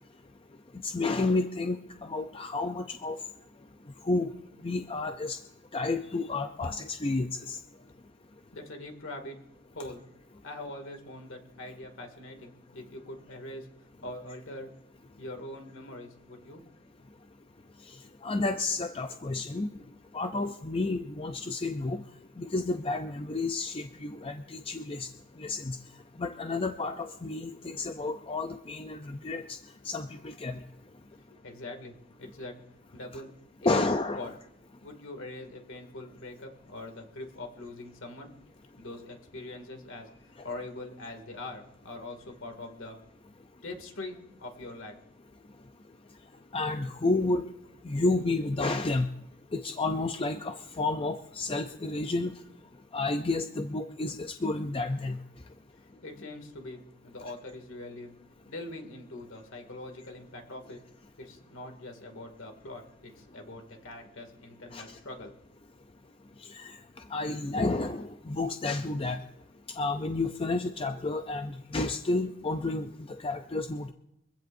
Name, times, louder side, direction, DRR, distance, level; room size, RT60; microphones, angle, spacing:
voice 1, 0.8-3.2 4.0-4.3 4.6-5.4 5.7-7.6 18.2-19.7 20.1-22.0 22.4-25.1 25.4-25.8 26.2-29.4 29.9-30.5 33.6-34.3 46.5-47.5 47.8-49.1 49.5-52.3 52.9-55.2 64.7-64.8 66.5-66.7 67.1-69.2 69.8-72.9 73.2-73.9, left 3 dB, 25° left, 6 dB, 0.5 m, -30 dB
voice 2, 8.5-9.4 9.7-10.0 10.4-13.7 14.0-14.7 15.2-16.6 31.4-32.5 32.9-33.3 33.6-33.8 34.2-34.3 34.8-38.3 38.8-43.0 43.6-44.9 55.8-58.1 58.5-60.8 61.2-65.3, left 2 dB, 60° left, 4 dB, 2.4 m, -43 dB
24.0 x 16.0 x 2.6 m, 0.84 s
head